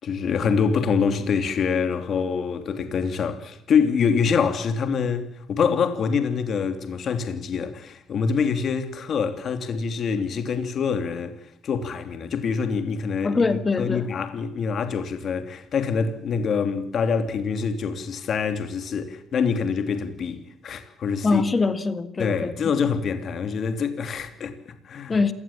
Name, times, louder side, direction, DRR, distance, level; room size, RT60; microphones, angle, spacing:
voice 1, 0.0-21.4 22.2-25.2, left 6 dB, 45° left, 3.0 m, -25 dB
voice 2, 13.2-14.1 21.2-22.6 25.1-25.3, left 4 dB, 25° left, 1.8 m, -23 dB
28.0 x 19.5 x 7.4 m
cardioid pair, 145°, 0 cm